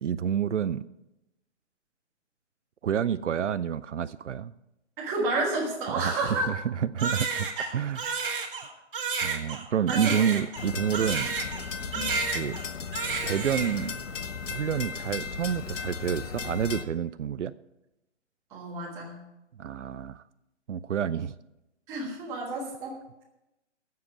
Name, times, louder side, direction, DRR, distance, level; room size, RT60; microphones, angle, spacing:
voice 1, 0.0-0.8 2.8-4.5 5.9-8.0 9.2-11.3 12.3-12.6 13.2-14.0 14.5-17.5 19.5-20.2 20.7-21.4, right 8 dB, 75° right, 15 dB, 0.6 m, -29 dB
voice 2, 5.0-6.5 7.6-7.7 8.0-8.1 9.9-10.2 11.9-12.1 18.5-19.2 21.9-23.0, right 2 dB, 10° right, -3 dB, 1.4 m, -30 dB
Crying sobbing, 7.0-11.7 11.9-12.7 12.9-13.9, right 5 dB, 45° right, 1.9 m, -31 dB
sound 1, 10.6-16.8, left 5 dB, 85° left, 1.2 m, -36 dB
13.5 x 7.7 x 6.8 m, 0.91 s
hypercardioid pair, 170°, 36 cm